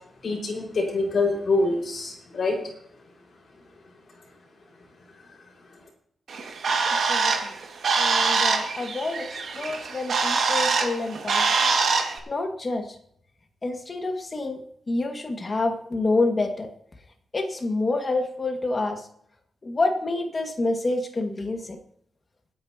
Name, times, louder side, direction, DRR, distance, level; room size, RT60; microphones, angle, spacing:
voice 1, 0.2-2.5, left 3 dB, 45° left, -1 dB, 5.1 m, -25 dB
Bird, 6.3-12.2, right 4 dB, 55° right, 2.0 m, -24 dB
voice 2, 6.9-7.3 8.0-9.3 9.5-11.4 12.3-12.8 13.6-14.6 14.9-16.7 17.3-19.0 19.6-21.6, left 2 dB, 25° left, 3 dB, 1.9 m, -27 dB
25.5 x 9.8 x 2.9 m, 0.71 s
wide cardioid pair, 175°, 0 cm